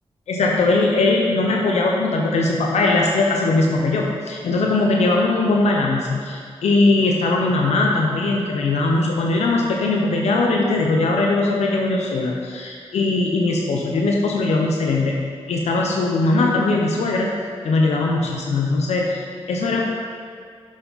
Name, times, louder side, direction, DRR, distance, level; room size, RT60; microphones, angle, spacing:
voice 1, 0.3-15.2 15.5-17.3 17.6-19.8, left 2 dB, 85° left, 0 dB, 0.8 m, -20 dB
7.5 x 7.3 x 4.0 m, 2.1 s
cardioid pair, 45°, 11 cm